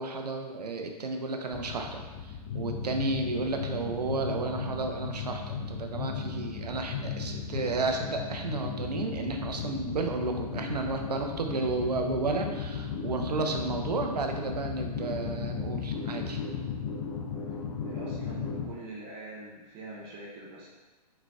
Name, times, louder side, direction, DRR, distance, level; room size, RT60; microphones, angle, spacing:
voice 1, 0.0-2.0 2.5-16.4, right 3 dB, 80° right, 4 dB, 0.6 m, -32 dB
sound 1, 1.5-18.7, left 6 dB, 60° left, 0.7 m, -36 dB
voice 2, 17.8-20.7, right 2 dB, 30° right, -5 dB, 0.8 m, -44 dB
4.1 x 3.9 x 2.3 m, 1.2 s
figure-of-eight pair, 115°, 21 cm